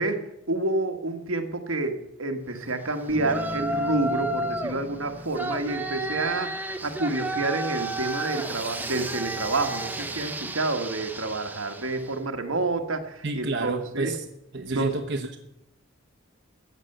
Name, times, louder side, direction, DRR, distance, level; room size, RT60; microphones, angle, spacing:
voice 1, 0.0-14.1 14.7-14.9, right 2 dB, 80° right, 5 dB, 1.6 m, -29 dB
Bass guitar, 3.1-6.8, equal, 35° right, 1.3 m, -41 dB
Yell, 3.2-4.8 5.3-12.1, right 1 dB, 10° right, 0.8 m, -32 dB
voice 2, 13.2-14.3 14.5-15.4, right 2 dB, 55° right, 4 dB, 1.0 m, -30 dB
15.0 x 9.1 x 6.7 m, 0.86 s
head